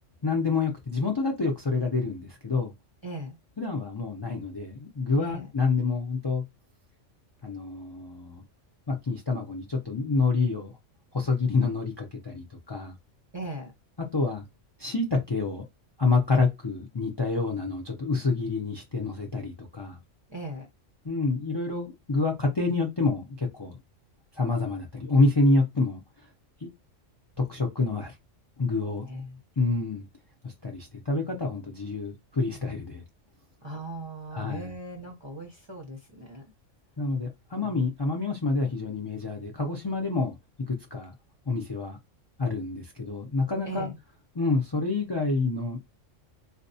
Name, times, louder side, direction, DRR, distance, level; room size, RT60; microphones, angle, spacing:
voice 1, 0.2-2.7 3.6-6.4 7.4-8.4 8.9-10.7 11.1-12.9 14.0-14.4 14.8-15.6 16.0-20.0 21.0-23.8 24.4-26.0 26.6-26.7 27.4-28.1 28.6-29.0 29.6-30.1 30.4-33.0 34.3-34.7 37.0-40.4 40.7-41.1 41.5-42.0 42.4-43.9 44.3-45.8, left 3 dB, 35° left, 0.4 m, -27 dB
voice 2, 3.0-3.4 5.2-5.5 13.3-13.7 20.3-20.7 29.0-29.4 33.6-36.4 43.6-44.0, right 1 dB, 30° right, 0.6 m, -38 dB
4.1 x 2.3 x 2.6 m
omnidirectional pair, 1.3 m